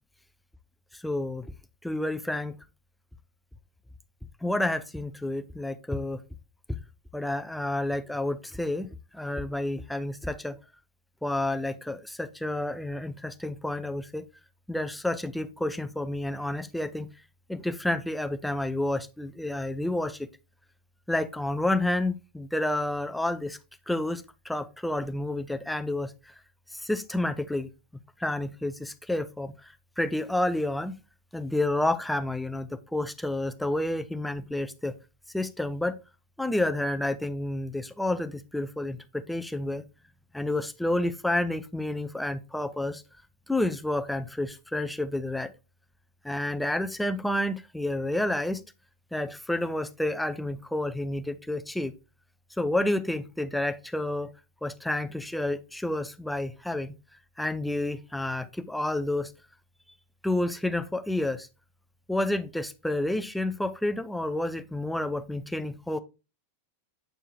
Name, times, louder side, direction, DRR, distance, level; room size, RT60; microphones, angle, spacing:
voice 1, 0.9-1.5 1.8-2.5 4.4-6.2 7.1-8.9 9.1-10.6 11.2-14.3 14.7-17.1 17.5-20.3 21.1-23.6 23.9-26.1 26.7-27.7 28.2-31.0 31.3-34.9 35.3-36.0 36.4-39.8 40.3-43.0 43.5-45.5 46.2-48.6 49.1-51.9 52.6-54.3 54.6-56.9 57.4-59.3 60.2-61.5 62.1-66.0, left 1 dB, 5° left, 0.5 m, -30 dB
7.4 x 4.5 x 3.1 m
figure-of-eight pair, 90°, 0 cm